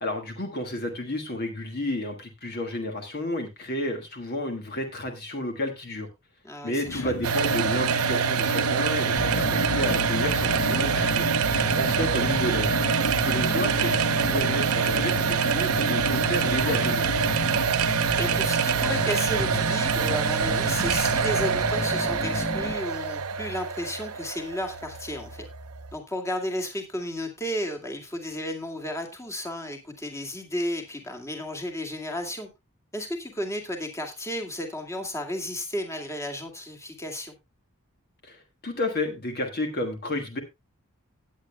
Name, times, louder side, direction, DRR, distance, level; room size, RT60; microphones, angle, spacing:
voice 1, 0.0-6.1 6.6-11.3 11.7-12.8 13.2-17.1 38.2-40.4, left 1 dB, 45° left, 4 dB, 1.6 m, -31 dB
voice 2, 6.4-7.1 12.2-12.3 18.2-25.5 25.9-32.5 32.9-37.3, left 1 dB, 15° left, 3 dB, 2.1 m, -33 dB
sound 1, 6.8-17.7, left 3 dB, 75° left, 0.6 m, -35 dB
sound 2, 7.2-26.0, right 7 dB, 85° right, 0.8 m, -26 dB
sound 3, 9.2-22.7, left 2 dB, 30° left, 0.7 m, -32 dB
17.5 x 8.6 x 2.2 m, 0.21 s
head